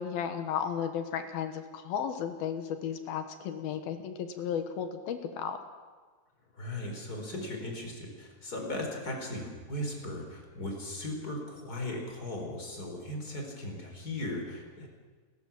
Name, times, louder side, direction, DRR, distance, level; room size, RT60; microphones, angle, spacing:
voice 1, 0.0-5.6, left 8 dB, 70° left, 8 dB, 2.8 m, -34 dB
voice 2, 6.5-14.9, left 1 dB, 20° left, 2 dB, 4.1 m, -37 dB
29.5 x 13.5 x 7.2 m, 1.4 s
omnidirectional pair, 5.0 m